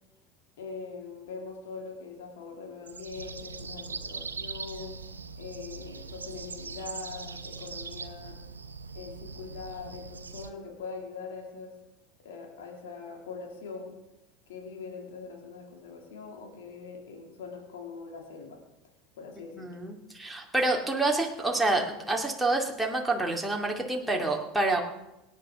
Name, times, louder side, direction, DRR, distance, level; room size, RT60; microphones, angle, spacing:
voice 1, 0.6-5.0 5.4-8.4 8.9-11.8 12.2-14.0 14.5-18.6 19.2-19.8, left 5 dB, 70° left, 2 dB, 2.7 m, -42 dB
sound 1, 2.9-10.5, right 4 dB, 90° right, 0.7 m, -41 dB
voice 2, 19.6-24.8, right 2 dB, 5° right, 0 dB, 2.4 m, -28 dB
24.5 x 9.2 x 3.7 m, 0.96 s
hypercardioid pair, 80°, 0 cm